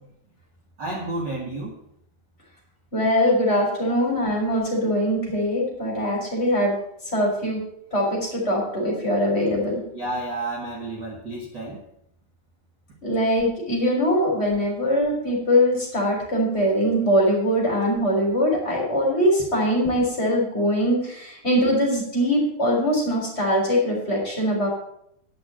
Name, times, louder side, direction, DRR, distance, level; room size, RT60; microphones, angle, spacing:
voice 1, 0.8-1.7 9.9-11.8, right 2 dB, 40° right, -2 dB, 1.7 m, -31 dB
voice 2, 2.9-6.8 7.1-7.6 7.9-9.8 13.0-24.7, equal, 15° left, -2 dB, 3.5 m, -22 dB
10.5 x 6.0 x 7.6 m, 0.72 s
omnidirectional pair, 4.3 m